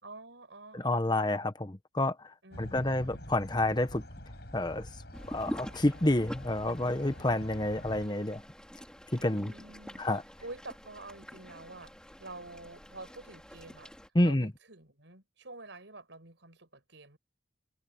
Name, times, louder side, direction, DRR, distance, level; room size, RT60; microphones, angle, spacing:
voice 1, 0.0-1.5 2.4-3.3 9.2-10.0 10.4-11.9 12.2-13.9 14.2-17.2, right 2 dB, 75° right, 5.2 m, -48 dB
voice 2, 0.7-2.2 2.6-4.0 4.5-4.9 5.3-8.4 9.1-9.5 10.0-10.2 14.1-14.5, left 1 dB, 25° left, 1.1 m, -29 dB
sound 1, 2.5-8.1, left 1 dB, 60° left, 7.8 m, -46 dB
sound 2, 5.1-14.1, equal, 5° left, 4.1 m, -46 dB
head